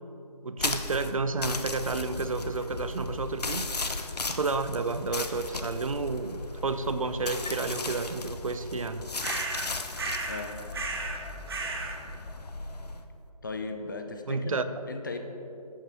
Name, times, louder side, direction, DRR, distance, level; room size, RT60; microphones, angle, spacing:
voice 1, 0.4-3.7 4.3-9.0 14.3-14.6, right 3 dB, 60° right, 11 dB, 0.6 m, -31 dB
sound 1, 0.6-13.0, left 3 dB, 85° left, 0.9 m, -36 dB
sound 2, 9.2-9.7 10.0-10.4 10.7-11.2 11.5-12.0, right 3 dB, 40° right, 1.2 m, -33 dB
voice 2, 13.4-15.2, left 3 dB, 30° left, 5 dB, 0.7 m, -37 dB
13.0 x 9.0 x 3.6 m, 3.0 s
figure-of-eight pair, 165°, 20 cm